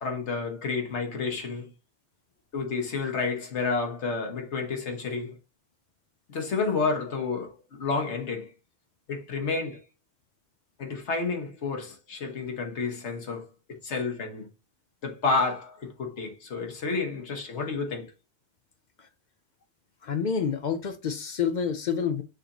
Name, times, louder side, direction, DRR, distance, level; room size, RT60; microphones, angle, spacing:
voice 1, 0.0-1.7 2.5-5.4 6.3-8.5 9.1-9.8 10.8-14.5 15.0-18.1, left 4 dB, 90° left, 1.4 m, -30 dB
voice 2, 20.0-22.2, left 7 dB, 55° left, 0.6 m, -28 dB
6.4 x 2.6 x 2.9 m
omnidirectional pair, 1.1 m